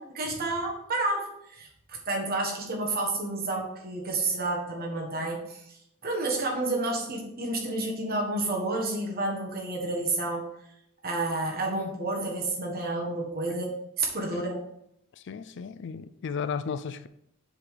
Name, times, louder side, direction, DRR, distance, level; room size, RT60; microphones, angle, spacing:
voice 1, 0.0-5.6 6.0-10.5 11.0-14.6, right 2 dB, 45° right, 1.6 m, -30 dB
voice 2, 15.3-17.1, left 6 dB, 55° left, 0.4 m, -34 dB
7.3 x 3.8 x 4.9 m
head